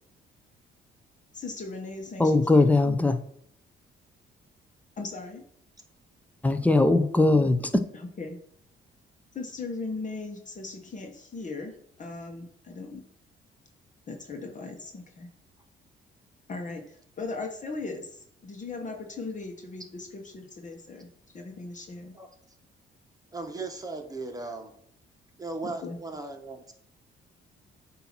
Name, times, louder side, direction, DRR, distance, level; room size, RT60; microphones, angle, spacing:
voice 1, 1.3-3.0 5.0-5.4 7.9-8.4 9.3-13.0 14.1-15.3 16.5-22.1 25.6-26.0, left 3 dB, 40° left, 2 dB, 1.2 m, -38 dB
voice 2, 2.2-3.2 6.4-7.6, left 2 dB, 5° left, 9 dB, 0.7 m, -20 dB
voice 3, 23.3-24.7 25.4-26.7, right 3 dB, 20° right, 4 dB, 1.4 m, -37 dB
8.1 x 2.8 x 6.0 m, 0.67 s
cardioid pair, 90°, 20 cm